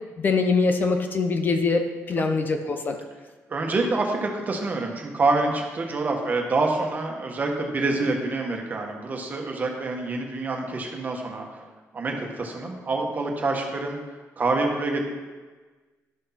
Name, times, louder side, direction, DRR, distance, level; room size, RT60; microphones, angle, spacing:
voice 1, 0.2-3.0, left 4 dB, 35° left, 6 dB, 0.7 m, -23 dB
voice 2, 3.5-11.6 11.9-14.0 14.4-15.0, right 3 dB, 30° right, 1 dB, 1.5 m, -26 dB
11.5 x 6.5 x 5.8 m, 1.3 s
wide cardioid pair, 165°, 6 cm